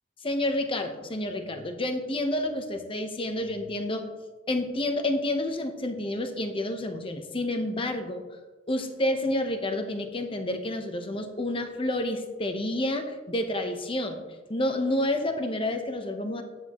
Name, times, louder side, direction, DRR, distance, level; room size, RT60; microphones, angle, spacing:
voice 1, 0.2-4.1 4.5-8.2 8.7-14.2 14.5-16.4, left 1 dB, 30° left, 6 dB, 0.9 m, -29 dB
11.0 x 9.2 x 3.0 m, 1.2 s
head